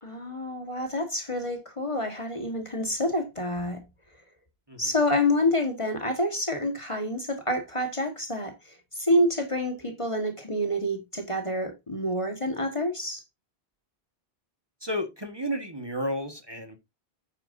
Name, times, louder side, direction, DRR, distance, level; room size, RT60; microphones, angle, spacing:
voice 1, 0.0-3.8 4.8-13.2, left 1 dB, 30° left, 1.7 m, -28 dB
voice 2, 14.8-16.8, equal, 25° right, 1.6 m, -32 dB
9.2 x 8.9 x 2.7 m
omnidirectional pair, 1.1 m